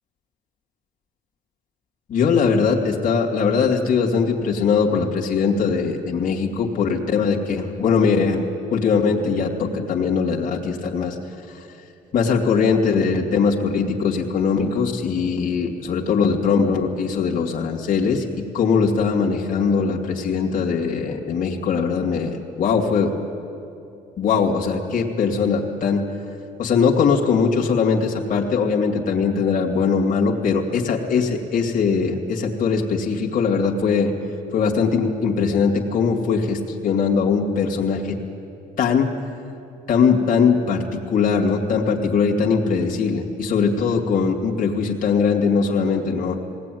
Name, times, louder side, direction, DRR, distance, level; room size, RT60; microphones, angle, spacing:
voice 1, 2.1-8.4 8.7-11.2 11.5-11.6 12.1-23.1 24.2-26.1 26.6-34.1 34.5-38.2 38.8-39.1 39.9-46.4, left 5 dB, 50° left, 0 dB, 2.4 m, -21 dB
20.5 x 17.5 x 9.3 m, 2.8 s
cardioid pair, 110°, 17 cm